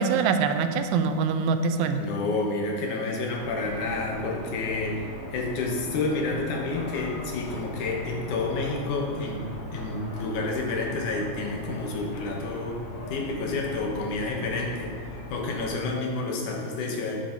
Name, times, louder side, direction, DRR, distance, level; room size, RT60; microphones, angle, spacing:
voice 1, 0.0-2.0, right 5 dB, 85° right, 7 dB, 1.9 m, -24 dB
voice 2, 2.0-5.0 5.3-9.4 9.7-12.8 13.1-15.0 15.3-17.2, left 3 dB, 90° left, 0 dB, 2.7 m, -29 dB
sound 1, 3.3-15.7, left 1 dB, 55° left, 1.4 m, -39 dB
10.0 x 5.4 x 4.5 m, 2.1 s
omnidirectional pair, 3.4 m